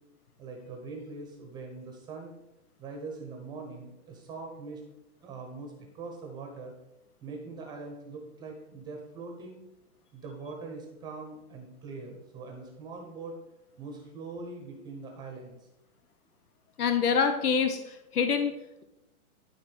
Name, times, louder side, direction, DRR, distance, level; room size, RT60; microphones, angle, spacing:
voice 1, 0.4-2.3 2.8-4.8 5.2-6.7 7.2-9.6 10.1-13.4 13.8-15.7, right 3 dB, 10° right, 2 dB, 0.9 m, -42 dB
voice 2, 16.8-18.6, left 6 dB, 85° left, 8 dB, 1.2 m, -26 dB
12.5 x 4.2 x 6.3 m, 0.92 s
hypercardioid pair, 160°, 44 cm